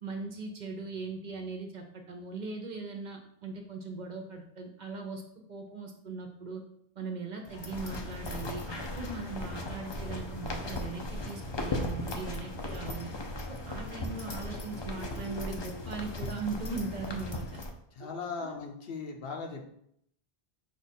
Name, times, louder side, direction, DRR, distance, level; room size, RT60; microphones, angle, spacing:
voice 1, 0.0-5.2 5.5-6.6 7.0-13.1 13.5-17.6 18.0-18.1 18.4-18.5, right 4 dB, 55° right, 3 dB, 0.6 m, -39 dB
sound 1, 7.5-17.7, left 2 dB, 40° left, 0.4 m, -37 dB
voice 2, 17.9-19.7, left 4 dB, 70° left, 3 dB, 0.9 m, -38 dB
5.0 x 2.4 x 4.1 m, 0.71 s
omnidirectional pair, 1.0 m